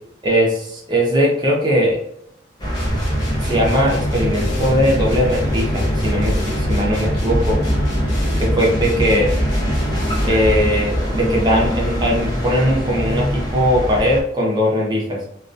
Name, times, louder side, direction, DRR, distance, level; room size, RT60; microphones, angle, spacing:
voice 1, 0.2-2.0 3.4-7.6 8.4-9.4 10.2-15.2, equal, 25° right, -3 dB, 0.6 m, -19 dB
sound 1, 2.6-14.2, equal, 20° left, 0.6 m, -22 dB
sound 2, 2.7-10.5, equal, 70° left, 0.9 m, -28 dB
2.3 x 2.2 x 2.5 m, 0.73 s
head